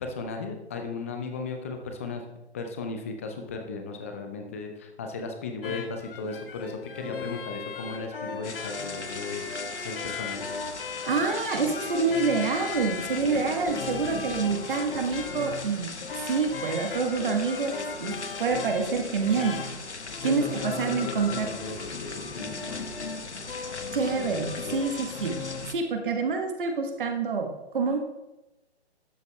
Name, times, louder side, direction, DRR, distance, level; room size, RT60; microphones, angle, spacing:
voice 1, 0.0-2.3 2.5-10.5 20.2-23.0, left 4 dB, 15° left, 4 dB, 0.4 m, -36 dB
sound 1, 5.6-25.6, left 4 dB, 55° left, 1.2 m, -37 dB
sound 2, 8.4-25.7, left 4 dB, 85° left, 0.9 m, -39 dB
voice 2, 11.0-17.7 18.0-18.1 18.4-19.6 20.2-21.5 23.9-28.0, right 4 dB, 50° right, 4 dB, 1.3 m, -27 dB
12.0 x 7.9 x 2.3 m, 0.99 s
figure-of-eight pair, 130°, 33 cm